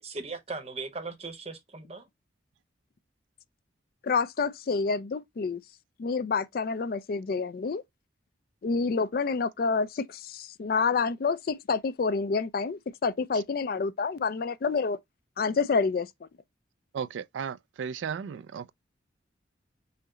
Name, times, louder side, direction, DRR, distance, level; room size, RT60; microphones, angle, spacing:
voice 1, 0.0-2.1, right 3 dB, 35° right, 0.8 m, -38 dB
voice 2, 4.0-5.6 6.0-7.8 8.6-15.0 15.4-16.1, left 4 dB, 50° left, 0.3 m, -28 dB
voice 3, 16.9-18.7, right 7 dB, 80° right, 0.3 m, -35 dB
5.7 x 2.0 x 3.7 m
head